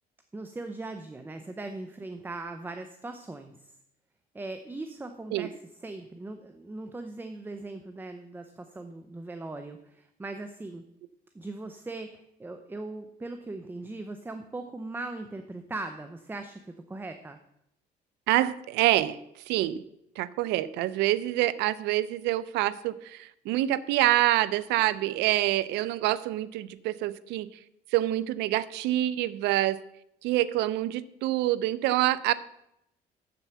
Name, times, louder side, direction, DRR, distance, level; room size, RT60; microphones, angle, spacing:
voice 1, 0.3-3.7 4.3-5.5 5.8-10.8 11.3-17.4, right 2 dB, 10° right, 8 dB, 0.7 m, -39 dB
voice 2, 18.3-19.2 19.5-19.8 20.2-27.5 27.9-29.8 30.2-32.3, right 15 dB, 90° right, 17 dB, 0.5 m, -26 dB
7.7 x 7.2 x 6.9 m, 0.80 s
cardioid pair, 110°, 17 cm